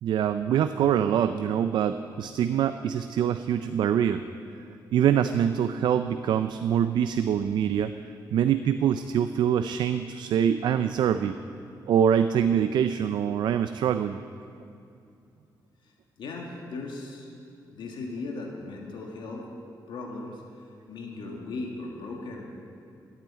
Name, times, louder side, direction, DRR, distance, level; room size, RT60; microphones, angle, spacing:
voice 1, 0.0-4.2 4.9-7.9 8.3-11.4 11.9-14.2, right 9 dB, 75° right, 10 dB, 0.4 m, -24 dB
voice 2, 16.2-17.3 17.7-19.5 19.9-22.5, left 3 dB, 80° left, 0 dB, 1.7 m, -37 dB
12.0 x 8.9 x 8.6 m, 2.5 s
wide cardioid pair, 175°, 8 cm